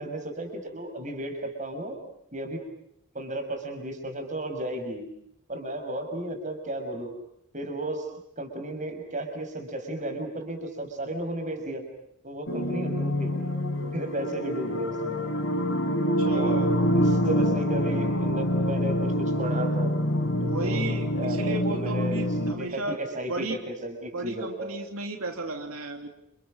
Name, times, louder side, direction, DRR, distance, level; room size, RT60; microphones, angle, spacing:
voice 1, 0.0-1.9 2.3-2.6 3.1-5.1 5.5-7.1 7.5-8.1 8.4-11.8 12.2-13.4 13.9-15.2 16.3-16.6 17.0-19.9 20.6-20.9 21.1-22.2 22.4-24.8, right 1 dB, 35° right, 5 dB, 6.1 m, -34 dB
sound 1, 12.5-22.5, equal, 65° left, 4.4 m, -26 dB
voice 2, 16.2-16.7 20.4-23.0 23.3-23.6 24.1-26.1, right 2 dB, 90° right, 4 dB, 2.9 m, -34 dB
30.0 x 29.5 x 6.4 m, 0.75 s
head